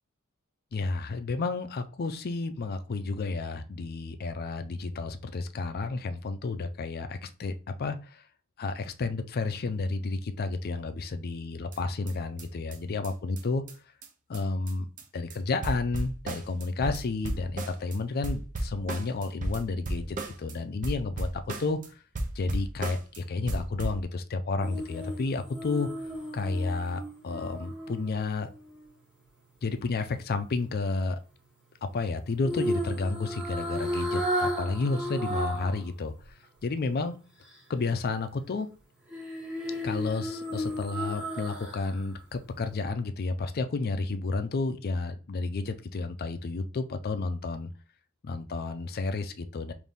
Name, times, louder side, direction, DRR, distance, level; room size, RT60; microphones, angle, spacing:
voice 1, 0.7-7.5 7.8-8.2 8.6-13.6 14.3-14.9 15.1-21.8 22.4-25.9 26.3-28.5 29.6-31.2 31.8-36.1 36.6-37.1 37.7-38.7 39.8-47.7 48.2-49.7, left 3 dB, 45° left, 9 dB, 0.4 m, -31 dB
sound 1, 11.7-11.8 12.1-12.2 12.4-12.5 12.7-12.8 13.0-13.1 13.4-13.5 13.7-13.8 14.0-14.1 14.3-14.4 14.7-15.0 15.3-15.4 15.6-18.0 18.2-20.5 20.8-21.9 22.1-23.2 23.5-24.0, right 1 dB, 40° right, 0.6 m, -34 dB
sound 2, 24.6-28.8 32.4-35.8 36.2-36.3 39.1-42.0 42.3-42.5, equal, 5° right, 1.3 m, -34 dB
3.5 x 2.6 x 3.9 m, 0.35 s
head